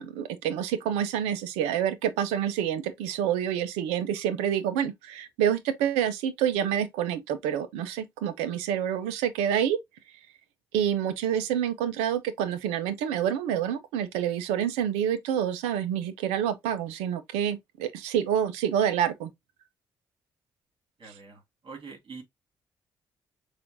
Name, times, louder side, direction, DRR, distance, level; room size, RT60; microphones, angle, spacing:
voice 1, 0.0-9.8 10.7-19.3, right 9 dB, 85° right, 0.5 m, -27 dB
voice 2, 21.0-22.2, right 4 dB, 55° right, 2.5 m, -44 dB
6.7 x 2.5 x 2.6 m
hypercardioid pair, 45°, 10 cm